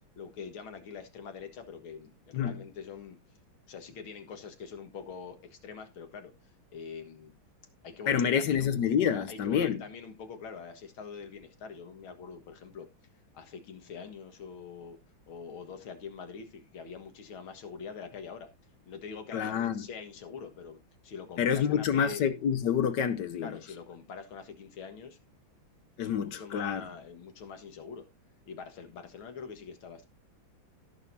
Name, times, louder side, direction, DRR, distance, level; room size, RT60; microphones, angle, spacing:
voice 1, 0.2-3.2 3.7-6.3 6.7-7.3 7.8-8.7 9.1-12.9 13.3-15.0 15.3-18.5 18.9-22.2 23.4-25.2 26.0-28.1 28.5-30.1, left 6 dB, 85° left, 2.4 m, -44 dB
voice 2, 8.1-9.8 19.3-19.8 21.4-23.5 26.0-26.8, left 8 dB, 65° left, 1.3 m, -28 dB
17.0 x 6.6 x 2.7 m
omnidirectional pair, 2.2 m